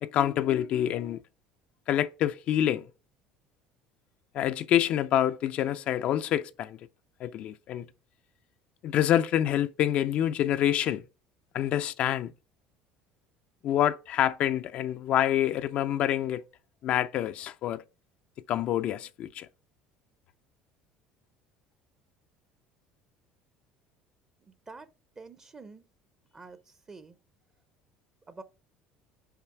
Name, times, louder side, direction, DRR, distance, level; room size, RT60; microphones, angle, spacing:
voice 1, 0.0-1.2 1.9-2.8 4.3-6.8 7.2-7.9 8.8-11.0 11.5-12.3 13.6-16.4 16.8-17.8 18.5-19.5, left 11 dB, 55° left, 0.3 m, -27 dB
voice 2, 24.4-24.9 25.2-25.8 26.3-27.2 28.3-28.4, right 3 dB, 25° right, 0.6 m, -47 dB
5.7 x 4.5 x 4.5 m
supercardioid pair, 90°, 2 cm